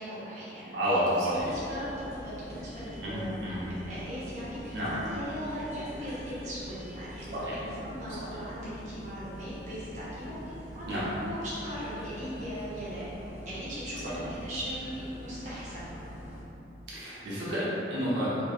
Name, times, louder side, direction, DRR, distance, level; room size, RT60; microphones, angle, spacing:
voice 1, 0.0-1.0 1.2-13.0 13.4-15.9, equal, 40° right, -11 dB, 0.9 m, -39 dB
voice 2, 0.7-1.3 3.0-3.6 4.7-4.9 7.3-7.5 10.9-11.0 16.9-18.4, equal, 75° right, -9 dB, 1.0 m, -30 dB
sound 1, 1.3-16.4, equal, 55° left, 1.3 m, -44 dB
4.6 x 3.0 x 2.4 m, 3.0 s
head